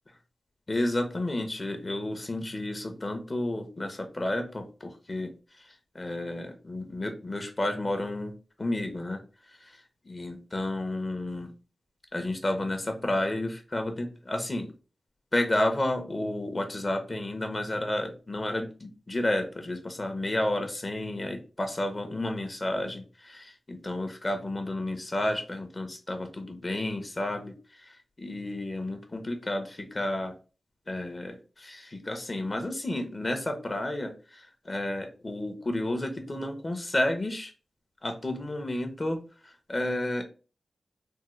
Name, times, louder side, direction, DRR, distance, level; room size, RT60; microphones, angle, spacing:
voice 1, 0.7-5.3 5.9-8.3 8.6-9.2 10.1-11.5 12.1-14.7 15.3-30.3 30.9-37.5 38.0-40.3, left 1 dB, 35° left, 5 dB, 0.7 m, -31 dB
3.5 x 2.0 x 3.0 m, 0.35 s
wide cardioid pair, 70°, 0 cm